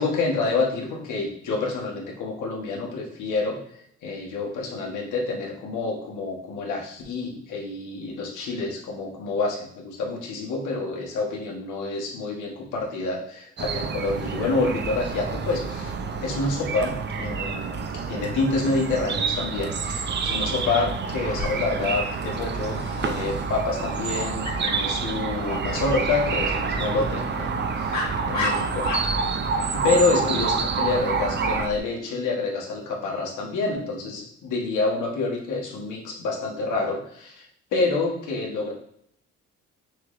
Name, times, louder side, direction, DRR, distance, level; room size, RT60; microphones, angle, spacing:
voice 1, 0.0-15.9 16.2-28.9 29.8-38.7, left 3 dB, 80° left, -1 dB, 1.3 m, -28 dB
sound 1, 13.6-31.7, right 5 dB, 35° right, 0.5 m, -28 dB
Dog, 21.2-31.8, left 2 dB, 65° left, 1.5 m, -36 dB
6.2 x 3.0 x 2.5 m, 0.69 s
cardioid pair, 90°, 30 cm